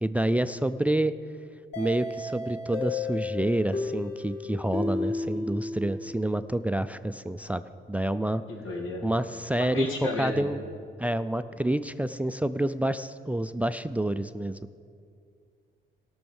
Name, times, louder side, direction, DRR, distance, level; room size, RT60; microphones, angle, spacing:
voice 1, 0.0-1.1 1.8-7.6 7.9-8.4 9.0-10.6 11.0-14.6, right 1 dB, 5° right, 13 dB, 0.3 m, -28 dB
sound 1, 1.7-6.4, left 3 dB, 60° left, 2.0 m, -33 dB
voice 2, 8.5-9.1 9.6-10.5, left 2 dB, 85° left, 1 dB, 2.3 m, -32 dB
17.0 x 6.3 x 7.0 m, 2.3 s
cardioid pair, 90°, 20 cm